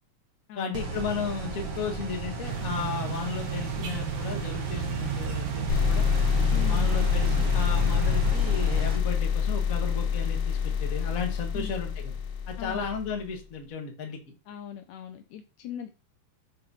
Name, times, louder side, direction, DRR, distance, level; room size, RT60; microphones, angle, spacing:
voice 1, 0.5-6.1 6.7-12.2 12.5-14.2, left 5 dB, 45° left, 2 dB, 1.1 m, -34 dB
sound 1, 0.7-9.0, right 1 dB, 55° right, 2.3 m, -34 dB
sound 2, 2.4-8.3, right 7 dB, 70° right, 2.2 m, -34 dB
sound 3, 5.7-13.2, left 7 dB, 70° left, 1.6 m, -26 dB
voice 2, 6.5-6.9 11.5-11.7 12.6-12.9 14.5-15.9, left 10 dB, 90° left, 6 dB, 1.6 m, -39 dB
6.5 x 3.9 x 5.5 m, 0.33 s
omnidirectional pair, 3.8 m